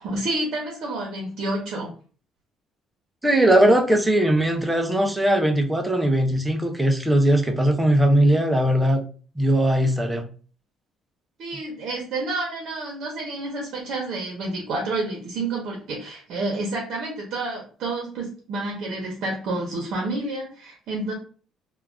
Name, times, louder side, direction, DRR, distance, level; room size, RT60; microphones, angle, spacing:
voice 1, 0.0-1.9 11.4-21.1, right 2 dB, 55° right, 0 dB, 0.7 m, -29 dB
voice 2, 3.2-9.0 9.4-10.2, right 1 dB, 5° right, 3 dB, 0.4 m, -19 dB
2.4 x 2.2 x 3.2 m, 0.40 s
cardioid pair, 175°, 0 cm